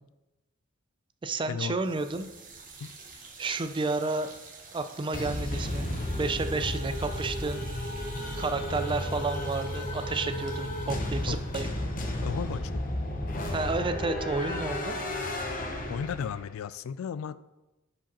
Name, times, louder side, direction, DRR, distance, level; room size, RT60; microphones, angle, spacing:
voice 1, 1.2-2.3 3.4-4.3 4.7-5.8 6.2-7.7 8.3-11.7 13.5-15.0, right 3 dB, 25° right, 9 dB, 0.4 m, -31 dB
sound 1, 1.8-12.9, right 4 dB, 40° right, 1.3 m, -49 dB
sound 2, 5.1-16.5, left 1 dB, 45° left, 0.9 m, -33 dB
voice 2, 12.2-12.8 15.9-17.4, left 7 dB, 80° left, 17 dB, 0.3 m, -34 dB
10.5 x 4.7 x 3.0 m, 1.0 s
head